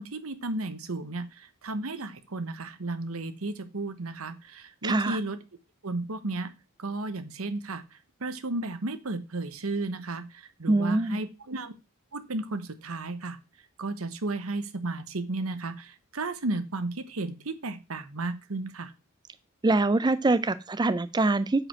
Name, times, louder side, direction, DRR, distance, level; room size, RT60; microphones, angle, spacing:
voice 1, 0.0-5.4 5.8-6.5 6.8-7.8 8.2-10.3 10.6-11.7 12.1-13.4 13.8-18.9, right 2 dB, 75° right, 11 dB, 1.1 m, -33 dB
voice 2, 4.8-5.2 10.7-11.2 19.6-21.7, right 2 dB, 20° right, 13 dB, 0.4 m, -24 dB
8.7 x 5.1 x 6.1 m, 0.28 s
head